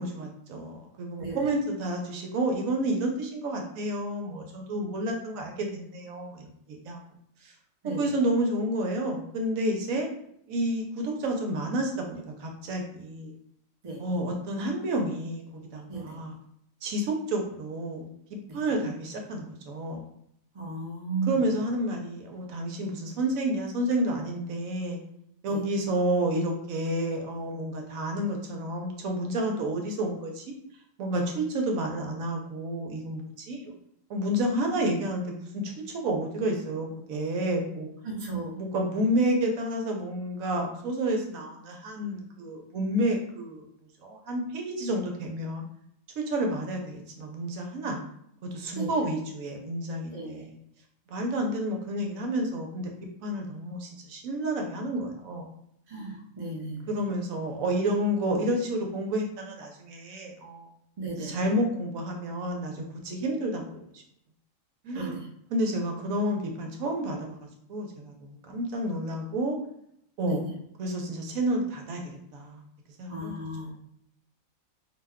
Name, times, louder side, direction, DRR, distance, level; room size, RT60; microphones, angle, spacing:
voice 1, 0.0-7.0 7.4-7.5 7.8-10.1 10.5-13.3 14.0-16.3 16.8-18.1 18.5-20.1 21.3-25.0 25.4-30.4 31.0-33.7 34.1-37.9 38.6-43.6 44.0-45.6 46.2-48.0 48.5-50.5 51.1-52.9 53.2-55.5 56.9-60.7 61.2-63.8 64.8-65.2 65.5-69.6 70.2-70.5 70.8-72.6 73.0-73.7, right 1 dB, 80° right, 2 dB, 1.0 m, -30 dB
voice 2, 1.2-1.5 7.8-8.0 13.8-14.0 15.9-16.2 18.5-18.6 20.5-21.4 25.5-25.6 38.0-38.6 48.7-48.9 50.1-50.4 55.9-56.9 61.0-61.4 64.9-65.3 68.5-68.6 70.2-70.4 73.1-73.7, right 3 dB, 35° right, -2 dB, 0.6 m, -35 dB
2.6 x 2.2 x 3.5 m, 0.72 s
omnidirectional pair, 1.4 m